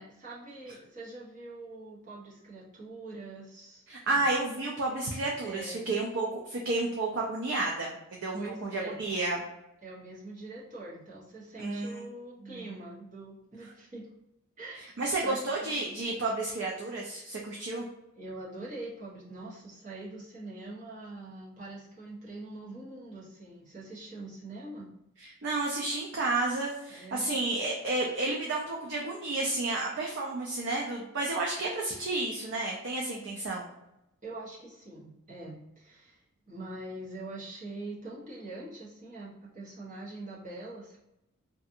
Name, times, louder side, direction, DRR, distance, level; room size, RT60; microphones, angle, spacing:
voice 1, 0.0-3.8 4.1-4.3 5.4-5.9 8.4-9.0 9.8-14.1 14.6-14.8 15.2-15.9 18.1-24.9 26.9-27.3 34.2-41.0, right 2 dB, 35° right, -7 dB, 0.9 m, -43 dB
voice 2, 3.9-9.4 11.6-12.0 12.4-12.7 15.0-17.9 25.2-33.7, right 2 dB, 55° right, -1 dB, 0.4 m, -31 dB
2.6 x 2.4 x 2.5 m, 0.87 s
head